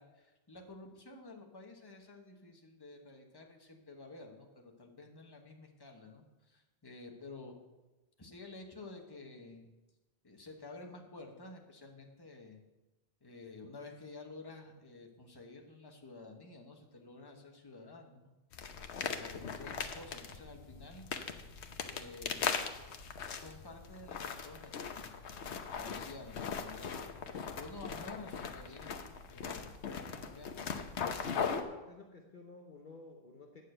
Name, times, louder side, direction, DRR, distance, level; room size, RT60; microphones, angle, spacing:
voice 1, 0.0-7.5 8.2-9.7 10.2-12.6 13.2-18.3 19.0-21.1 21.8-22.6 23.3-25.1 25.8-27.0 27.6-28.9 29.3-30.5, left 3 dB, 20° left, 2 dB, 1.2 m, -51 dB
sound 1, 18.5-31.6, left 6 dB, 90° left, 1.1 m, -40 dB
voice 2, 27.9-28.2 31.3-33.6, left 3 dB, 50° left, 2 dB, 1.1 m, -53 dB
9.3 x 6.6 x 7.7 m, 1.1 s
omnidirectional pair, 1.1 m